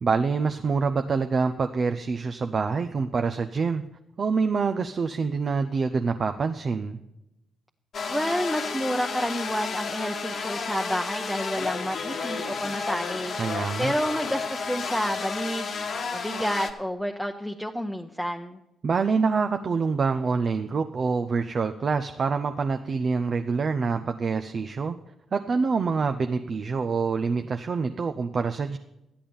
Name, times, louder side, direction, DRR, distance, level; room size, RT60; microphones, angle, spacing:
voice 1, 0.0-3.8 4.2-7.0 13.4-13.9 18.8-25.0 25.3-28.8, right 5 dB, 50° right, 7 dB, 0.6 m, -26 dB
sound 1, 7.9-16.7, left 5 dB, 60° left, 1.1 m, -32 dB
voice 2, 8.1-13.3 13.8-15.7 16.1-18.6, equal, ahead, 3 dB, 0.8 m, -29 dB
12.5 x 8.5 x 5.4 m, 0.90 s
hypercardioid pair, 40°, 0 cm